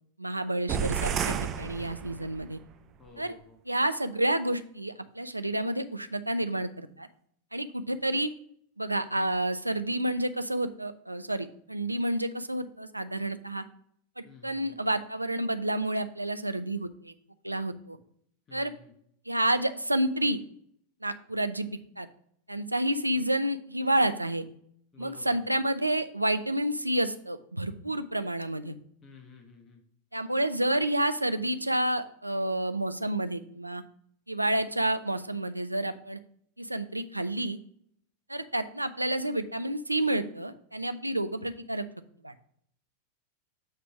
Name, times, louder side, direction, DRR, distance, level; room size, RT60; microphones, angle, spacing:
voice 1, 0.2-2.6 3.2-3.3 3.7-7.1 7.5-8.3 8.8-13.6 14.2-17.1 17.4-18.0 18.5-18.7 19.3-20.4 21.0-21.7 22.0-22.1 22.5-24.4 25.0-28.8 30.1-33.8 34.3-36.2 36.6-37.6 38.3-41.8 42.2-42.3, right 1 dB, 85° right, 10 dB, 0.4 m, -29 dB
sound 1, 0.7-2.5, right 8 dB, 30° right, 0.5 m, -31 dB
voice 2, 3.0-3.6 14.2-14.8 18.5-18.9 24.9-25.4 29.0-29.8, left 4 dB, 25° left, 3 dB, 1.3 m, -52 dB
8.0 x 3.4 x 5.7 m, 0.66 s
figure-of-eight pair, 90°, 0 cm